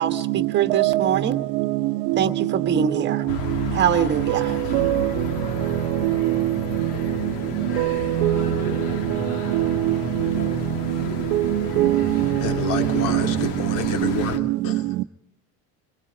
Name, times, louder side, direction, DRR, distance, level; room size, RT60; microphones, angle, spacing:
voice 1, 0.0-1.4 2.2-3.2 3.7-4.5, right 8 dB, 30° right, 1.4 m, -23 dB
voice 2, 0.7-1.1 1.6-1.7 3.1-3.2 4.3-5.1 6.0-6.5 7.6-8.5 9.5-10.5 11.3-12.3 12.8-13.2 14.0-14.1, right 17 dB, 75° right, 0.9 m, -22 dB
sound 1, 3.3-14.4, left 6 dB, 75° left, 2.0 m, -32 dB
voice 3, 12.4-15.1, left 6 dB, 60° left, 2.7 m, -30 dB
24.5 x 23.5 x 5.1 m
cardioid pair, 160°, 36 cm